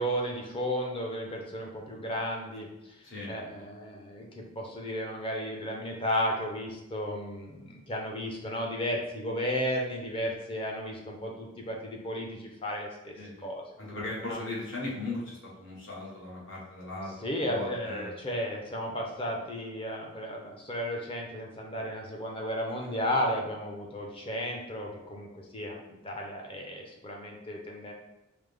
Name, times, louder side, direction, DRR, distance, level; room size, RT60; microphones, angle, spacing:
voice 1, 0.0-13.6 14.3-14.4 17.2-27.9, equal, 25° left, 0 dB, 0.6 m, -34 dB
voice 2, 13.1-13.5 13.8-18.1 22.8-22.9, left 2 dB, 55° left, -5 dB, 1.1 m, -38 dB
4.8 x 2.0 x 3.3 m, 0.94 s
head